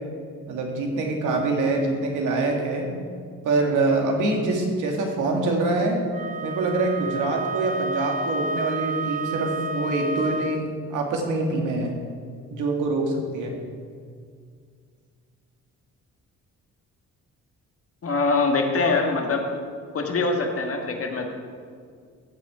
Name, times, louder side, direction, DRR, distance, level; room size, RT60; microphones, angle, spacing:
voice 1, 0.5-2.9 3.4-6.0 6.4-12.0 12.5-13.6, right 2 dB, 80° right, 1 dB, 2.0 m, -25 dB
Wind instrument woodwind instrument, 6.1-10.7, right 2 dB, 25° right, 0.5 m, -30 dB
voice 2, 18.0-19.4 19.9-21.3, left 3 dB, 50° left, 3 dB, 1.7 m, -23 dB
14.5 x 6.2 x 4.9 m, 2.1 s
cardioid pair, 90°, 30 cm